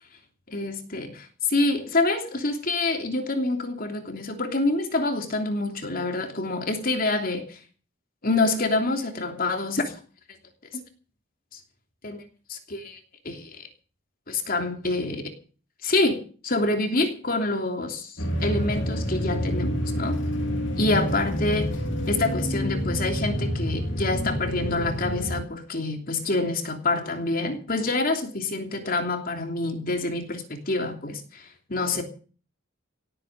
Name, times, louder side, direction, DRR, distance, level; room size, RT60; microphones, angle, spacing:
voice 1, 0.5-7.6 8.2-10.0 10.7-10.8 11.5-11.6 12.0-12.2 12.5-13.0 13.2-13.7 14.3-15.3 15.8-20.2 20.8-21.7 22.1-32.0, left 2 dB, 45° left, 3.0 m, -27 dB
sound 1, 18.2-25.4, equal, 60° left, 3.4 m, -28 dB
17.0 x 8.9 x 7.8 m
head